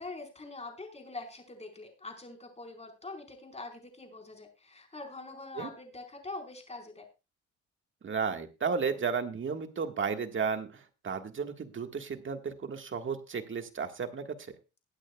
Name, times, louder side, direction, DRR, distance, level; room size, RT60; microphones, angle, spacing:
voice 1, 0.0-7.1, left 2 dB, 20° left, 3 dB, 4.6 m, -44 dB
voice 2, 8.0-14.4, right 5 dB, 40° right, 6 dB, 1.7 m, -33 dB
21.0 x 9.1 x 2.3 m, 0.29 s
cardioid pair, 90°, 30 cm